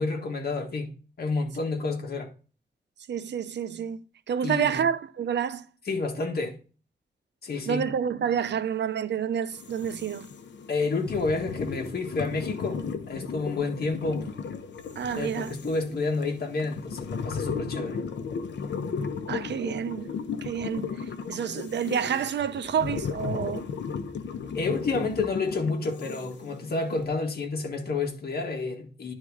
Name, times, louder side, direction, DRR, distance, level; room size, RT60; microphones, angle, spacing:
voice 1, 0.0-2.3 4.4-4.8 5.9-6.6 7.4-7.8 10.7-14.3 15.1-18.0 24.5-29.1, left 3 dB, 60° left, 1.8 m, -30 dB
voice 2, 3.1-4.0 4.3-5.7 7.7-10.3 15.0-15.5 19.3-20.1 20.4-20.9 21.3-23.6, right 8 dB, 75° right, 0.7 m, -28 dB
sound 1, 9.5-27.1, left 6 dB, 85° left, 0.9 m, -35 dB
10.5 x 3.8 x 4.8 m
wide cardioid pair, 145°, 18 cm